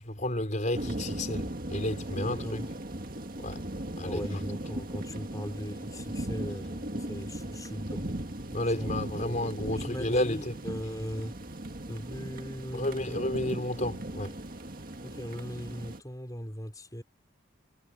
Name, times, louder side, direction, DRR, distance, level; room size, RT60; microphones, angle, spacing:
voice 1, 0.2-2.6 3.4-3.7 4.0-4.2 8.5-10.5 12.7-14.3, left 1 dB, 40° left, 4.7 m, -31 dB
sound 1, 0.7-16.0, right 1 dB, 45° right, 2.0 m, -38 dB
voice 2, 2.1-2.7 4.0-8.1 8.8-11.4 11.9-13.6 15.0-17.0, equal, 20° left, 5.6 m, -39 dB
head